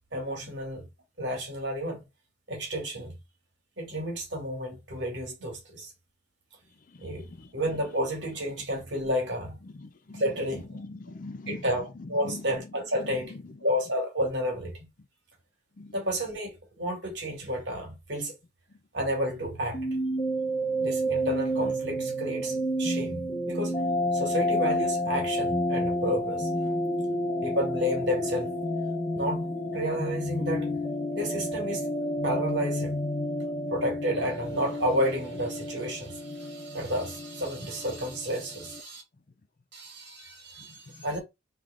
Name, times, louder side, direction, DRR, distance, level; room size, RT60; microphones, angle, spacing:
voice 1, 0.1-0.9 1.2-2.0 2.5-3.2 3.8-5.9 7.0-7.3 7.5-9.6 10.1-10.7 11.5-14.9 15.9-18.3 18.9-19.8 20.8-23.8 24.1-26.5 27.4-28.5 29.1-30.7 31.1-31.9 32.2-33.0 33.7-39.0 39.7-41.2, equal, 60° right, 2.0 m, -31 dB
voice 2, 7.4-8.0 9.7-12.7 13.0-13.6 15.8-15.9, left 2 dB, 40° left, 0.5 m, -43 dB
sound 1, 19.3-38.8, equal, 25° left, 1.0 m, -30 dB
3.7 x 3.4 x 3.5 m
head